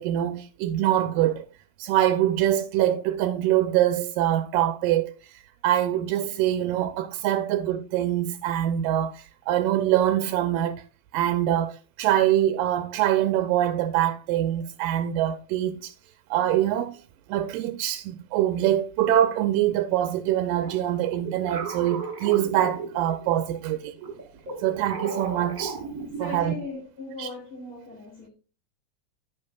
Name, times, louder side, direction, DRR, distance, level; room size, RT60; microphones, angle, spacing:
voice 1, 0.0-1.5 1.8-10.8 11.1-15.9 16.3-17.0 17.3-23.9 24.6-25.8 26.2-26.5 27.2-27.3, right 12 dB, 85° right, 2.2 m, -24 dB
sound 1, 20.6-23.4 24.0-26.7, right 5 dB, 45° right, 1.1 m, -36 dB
voice 2, 26.2-28.3, left 3 dB, 75° left, 5.3 m, -38 dB
10.5 x 9.4 x 2.3 m
omnidirectional pair, 3.9 m